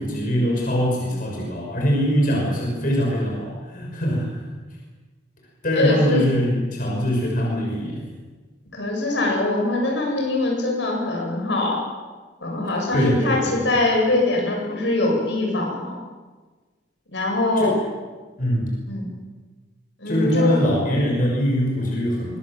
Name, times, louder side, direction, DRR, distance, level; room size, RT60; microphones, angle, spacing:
voice 1, 0.0-4.4 5.6-8.1 12.9-13.6 17.6-17.8 18.4-18.7 20.1-22.4, equal, 50° left, -1 dB, 6.2 m, -22 dB
voice 2, 5.7-6.3 8.7-11.8 12.4-15.9 17.1-17.8 18.9-19.1 20.0-20.6, left 2 dB, 75° left, 0 dB, 8.0 m, -22 dB
24.5 x 22.5 x 7.6 m, 1.3 s
head